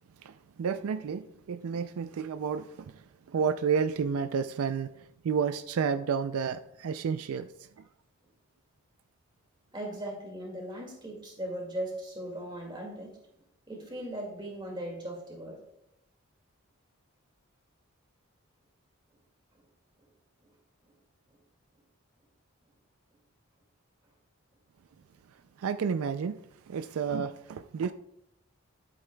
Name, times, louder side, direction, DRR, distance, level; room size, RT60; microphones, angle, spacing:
voice 1, 0.2-7.8 25.6-26.4 26.7-27.9, right 6 dB, 80° right, 11 dB, 0.4 m, -31 dB
voice 2, 9.7-13.2 13.7-15.6, right 1 dB, 20° right, 1 dB, 2.0 m, -38 dB
12.0 x 7.8 x 2.2 m, 0.79 s
head